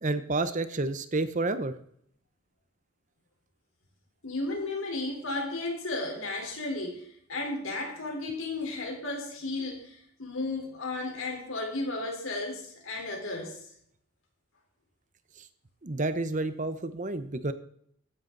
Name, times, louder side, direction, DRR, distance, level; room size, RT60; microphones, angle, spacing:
voice 1, 0.0-1.7 15.8-17.5, right 2 dB, 35° right, 12 dB, 0.8 m, -30 dB
voice 2, 4.2-13.6, left 2 dB, 75° left, 1 dB, 4.0 m, -34 dB
15.0 x 11.5 x 4.0 m, 0.67 s
head